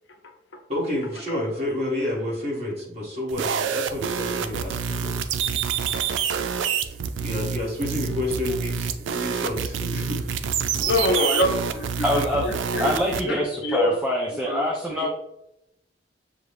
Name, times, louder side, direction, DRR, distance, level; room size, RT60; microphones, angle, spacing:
voice 1, 0.7-5.4 7.2-10.6, left 1 dB, 35° right, 1.7 m, -30 dB
sound 1, 3.3-13.2, right 7 dB, 85° right, 0.4 m, -27 dB
voice 2, 10.8-12.9 13.3-13.9 14.5-14.6 15.0-15.1, left 2 dB, 75° left, 0.7 m, -25 dB
voice 3, 12.0-15.1, equal, 5° right, 0.4 m, -25 dB
6.2 x 2.3 x 3.3 m
head